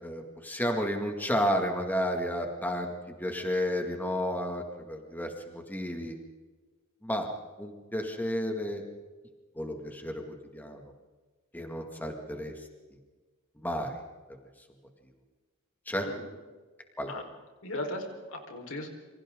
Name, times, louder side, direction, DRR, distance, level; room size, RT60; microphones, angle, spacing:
voice 1, 0.0-2.9 3.2-6.2 7.0-7.3 7.6-8.8 9.5-10.8 11.5-12.5 13.6-14.0 15.9-16.1 17.0-17.1, equal, 10° left, 3 dB, 2.2 m, -32 dB
voice 2, 16.0-16.4 17.0-17.2 17.6-18.9, left 1 dB, 65° left, 3 dB, 4.5 m, -37 dB
28.0 x 25.5 x 3.9 m, 1.3 s
head